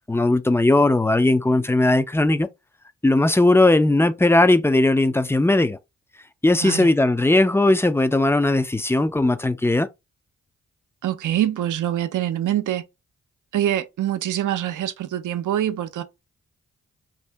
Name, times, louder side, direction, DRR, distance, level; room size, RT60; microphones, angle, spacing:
voice 1, 0.1-2.5 3.0-5.8 6.4-9.9, left 2 dB, 10° left, 0.4 m, -18 dB
voice 2, 11.0-12.8 13.5-16.0, right 12 dB, 65° right, 0.6 m, -24 dB
2.7 x 2.6 x 3.3 m
supercardioid pair, 40°, 32 cm